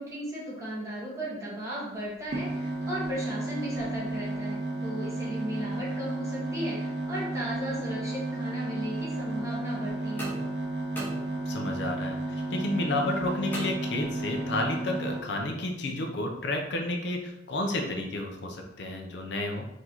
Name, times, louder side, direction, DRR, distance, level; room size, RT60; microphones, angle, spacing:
voice 1, 0.0-10.3, equal, 15° right, -7 dB, 1.4 m, -36 dB
sound 1, 2.3-15.2, right 2 dB, 60° right, 0.7 m, -33 dB
sound 2, 10.2-11.8 13.5-14.5, right 1 dB, 10° left, 0.9 m, -40 dB
voice 2, 11.5-19.7, left 2 dB, 65° left, 2 dB, 0.6 m, -31 dB
4.7 x 2.7 x 3.9 m, 0.88 s
head